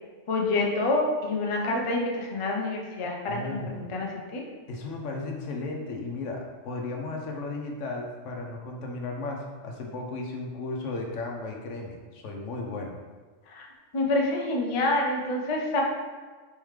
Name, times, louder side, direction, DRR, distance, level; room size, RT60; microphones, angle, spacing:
voice 1, 0.3-4.4 13.5-13.7 13.9-15.8, left 2 dB, 40° left, 0 dB, 0.4 m, -27 dB
voice 2, 3.3-3.8 4.7-13.0, left 3 dB, 80° left, 1 dB, 1.0 m, -35 dB
4.3 x 3.6 x 3.1 m, 1.4 s
omnidirectional pair, 1.3 m